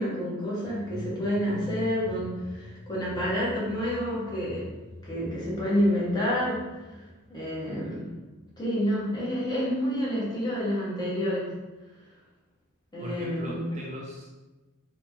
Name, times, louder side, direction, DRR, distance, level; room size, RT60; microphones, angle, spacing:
voice 1, 0.0-4.7 5.0-7.0 7.3-8.1 8.6-11.5 12.9-13.7, equal, 20° left, -8 dB, 1.0 m, -29 dB
sound 1, 0.6-10.5 10.8-10.9, left 1 dB, 70° left, 0.6 m, -45 dB
voice 2, 13.0-14.4, equal, 35° right, -3 dB, 0.4 m, -39 dB
2.9 x 2.4 x 2.8 m, 1.2 s
head